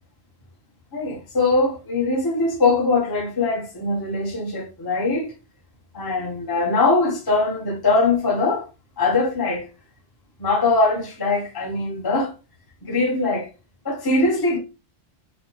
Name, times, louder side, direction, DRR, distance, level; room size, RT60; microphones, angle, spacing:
voice 1, 0.9-5.3 5.9-8.7 9.0-9.7 10.4-12.3 12.8-13.5 13.8-14.6, left 3 dB, 20° left, 0.7 m, -21 dB
3.8 x 3.0 x 3.0 m
omnidirectional pair, 1.3 m